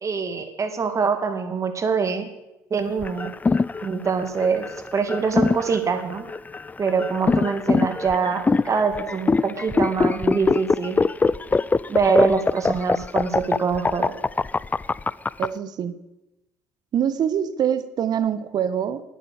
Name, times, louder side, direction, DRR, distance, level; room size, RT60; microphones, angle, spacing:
voice 1, 0.0-2.3 2.7-3.3 3.8-4.7 4.9-6.3 6.8-11.0 11.9-14.1, right 5 dB, 35° right, 8 dB, 2.2 m, -24 dB
sound 1, 3.0-15.5, left 4 dB, 20° left, 0.4 m, -22 dB
voice 2, 15.4-16.0 16.9-19.0, right 9 dB, 50° right, 14 dB, 1.1 m, -24 dB
11.0 x 9.2 x 8.0 m, 0.95 s
hypercardioid pair, 65°, 9 cm